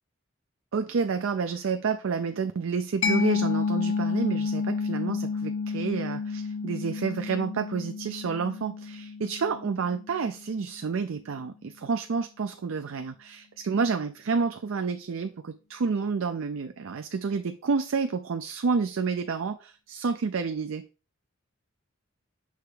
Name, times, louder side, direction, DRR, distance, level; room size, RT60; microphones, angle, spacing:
voice 1, 0.7-20.8, right 5 dB, 75° right, 8 dB, 0.5 m, -29 dB
Mallet percussion, 3.0-10.4, left 4 dB, 65° left, 0.6 m, -30 dB
6.5 x 3.4 x 5.0 m, 0.34 s
head